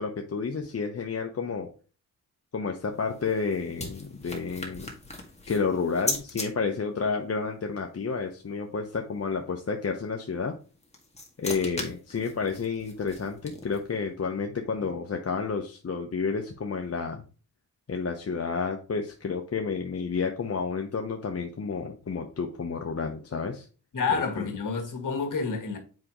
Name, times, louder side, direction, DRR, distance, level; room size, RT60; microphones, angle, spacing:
voice 1, 0.0-1.7 2.5-4.9 5.5-10.6 11.4-17.2 17.9-23.7 24.1-24.4, left 5 dB, 40° left, 0.8 m, -30 dB
sound 1, 2.8-6.5 10.6-14.0, left 2 dB, 15° left, 1.8 m, -38 dB
voice 2, 23.9-25.8, left 5 dB, 55° left, 2.0 m, -29 dB
7.5 x 4.9 x 3.0 m
cardioid pair, 70°, 37 cm